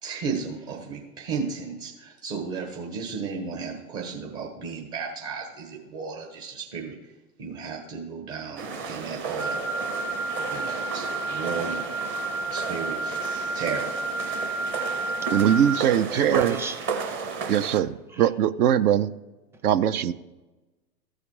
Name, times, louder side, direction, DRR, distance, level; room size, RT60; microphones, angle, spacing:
voice 1, 0.0-7.0 7.4-9.6 10.5-11.9 12.5-13.9, right 5 dB, 45° right, 1 dB, 1.6 m, -34 dB
sound 1, 8.6-17.8, right 5 dB, 25° right, 0.9 m, -34 dB
Wind instrument woodwind instrument, 9.4-15.8, right 2 dB, 85° right, 3.5 m, -31 dB
voice 2, 15.3-16.6 17.5-19.1 19.6-20.1, right 10 dB, 70° right, 15 dB, 0.6 m, -21 dB
voice 3, 16.1-16.9 18.1-18.3, right 4 dB, 5° right, 5 dB, 0.6 m, -30 dB
14.0 x 4.9 x 4.7 m, 1.1 s
hypercardioid pair, 115°, 47 cm